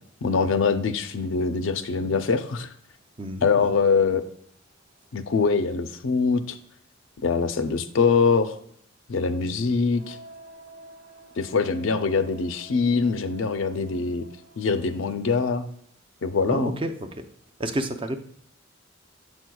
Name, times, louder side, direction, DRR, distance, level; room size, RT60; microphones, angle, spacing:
voice 1, 0.2-2.7 3.4-4.2 5.1-6.6 7.2-8.6 9.1-10.2 11.4-14.2 14.6-15.7 16.2-16.8, left 4 dB, 65° left, 10 dB, 0.5 m, -23 dB
voice 2, 3.2-3.7 16.5-16.9 17.6-18.2, right 1 dB, 25° right, 6 dB, 0.5 m, -29 dB
sound 1, 9.9-15.8, right 1 dB, 65° right, 1.2 m, -50 dB
7.5 x 6.1 x 2.3 m, 0.69 s
head